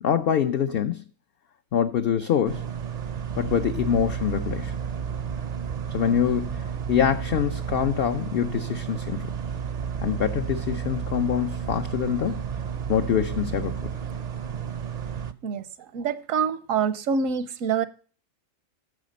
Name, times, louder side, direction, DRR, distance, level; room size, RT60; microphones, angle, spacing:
voice 1, 0.0-1.0 1.7-2.7 3.4-4.8 5.9-9.3 10.0-12.4 12.9-13.7, left 8 dB, 60° left, 0.7 m, -25 dB
sound 1, 2.5-15.3, right 7 dB, 45° right, 0.5 m, -32 dB
voice 2, 15.9-17.9, right 6 dB, 80° right, 1.1 m, -25 dB
10.0 x 6.8 x 5.1 m
omnidirectional pair, 1.4 m